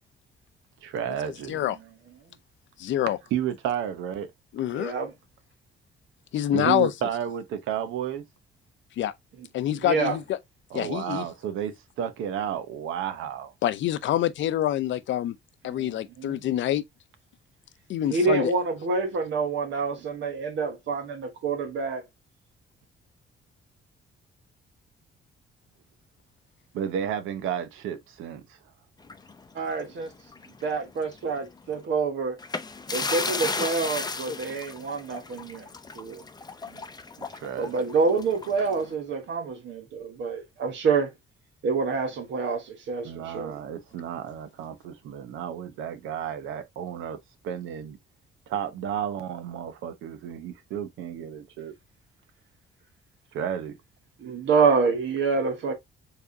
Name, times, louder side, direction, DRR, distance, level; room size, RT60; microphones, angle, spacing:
voice 1, 0.8-1.6 3.3-4.3 6.5-8.2 10.7-13.5 26.7-28.6 36.7-36.8 37.2-37.9 43.0-47.2 47.4-48.0 48.5-51.7 53.3-53.8, right 9 dB, 90° right, 0.8 m, -32 dB
voice 2, 2.8-3.2 4.5-4.9 6.3-6.9 9.0-9.1 9.5-10.4 10.7-11.3 13.6-15.3 15.6-16.8 17.9-18.5, left 12 dB, 70° left, 0.6 m, -26 dB
voice 3, 4.7-5.1 9.8-10.2 15.6-16.4 18.1-22.0 29.5-30.1 30.6-32.4 32.9-35.7 35.9-36.2 37.6-41.1 41.6-43.6 54.2-55.7, right 4 dB, 65° right, 1.1 m, -27 dB
sound 1, 29.1-30.6 31.0-31.1 32.4-38.9, left 4 dB, 20° left, 0.6 m, -34 dB
4.6 x 3.5 x 2.6 m
cardioid pair, 90°, 20 cm